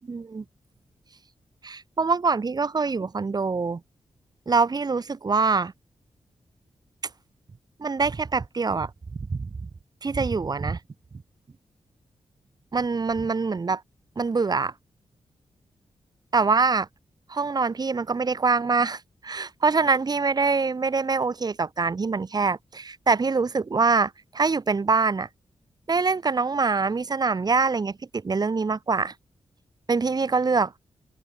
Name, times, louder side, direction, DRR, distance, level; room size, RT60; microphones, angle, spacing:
voice 1, 0.0-0.4 1.6-3.8 4.5-5.7 7.8-8.9 9.2-9.7 10.0-10.8 12.7-13.8 14.2-14.7 16.3-16.9 17.3-25.3 25.9-29.1 29.9-30.7, right 4 dB, 40° right, 7.2 m, -24 dB
open air
wide cardioid pair, 130°, 11 cm